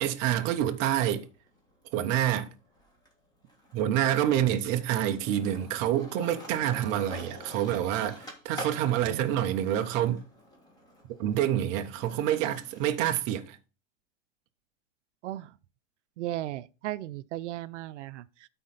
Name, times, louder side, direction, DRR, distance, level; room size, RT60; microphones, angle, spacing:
voice 1, 0.0-1.3 1.9-2.5 3.7-10.2 11.2-13.6, right 11 dB, 20° right, 0.4 m, -27 dB
Skateboard, 0.8-2.4 2.7-13.0, equal, 10° left, 1.8 m, -47 dB
voice 2, 16.2-18.5, right 14 dB, 65° right, 0.6 m, -36 dB
12.5 x 4.2 x 4.0 m
supercardioid pair, 145°, 38 cm